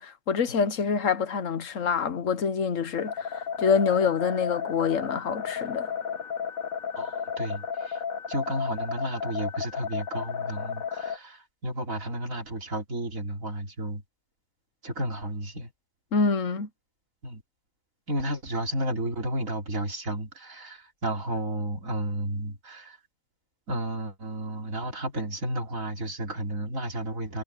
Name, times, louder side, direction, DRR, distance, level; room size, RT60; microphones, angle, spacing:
voice 1, 0.0-5.9 16.1-16.7, left 5 dB, 70° left, 1.4 m, -26 dB
sound 1, 2.9-11.2, left 7 dB, 90° left, 1.8 m, -33 dB
voice 2, 7.0-8.0 8.3-14.0 14.8-15.7 17.2-17.4 18.1-23.0 23.7-27.4, right 1 dB, 75° right, 3.8 m, -32 dB
omnidirectional pair, 1.4 m